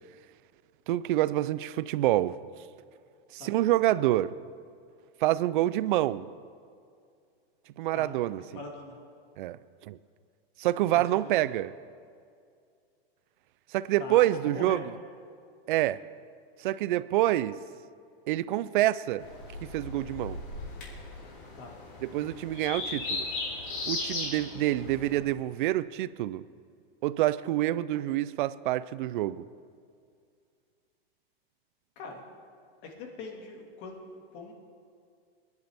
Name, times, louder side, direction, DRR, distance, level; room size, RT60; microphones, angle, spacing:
voice 1, 0.9-2.4 3.3-4.3 5.2-6.3 7.8-8.4 9.4-10.0 10.6-11.7 13.7-14.9 15.7-16.1 16.6-17.6 18.3-19.3 19.6-20.4 22.0-23.2 23.9-26.5 27.0-29.5, right 14 dB, 55° right, 0.5 m, -27 dB
voice 2, 8.5-9.0 10.9-11.0 14.0-14.2 14.5-14.8 21.6-21.8 32.0-32.3 32.9-34.5, left 4 dB, 35° left, 2.2 m, -42 dB
sound 1, 19.2-25.2, left 3 dB, 60° left, 3.6 m, -37 dB
22.5 x 11.0 x 3.5 m
supercardioid pair, 160°, 30 cm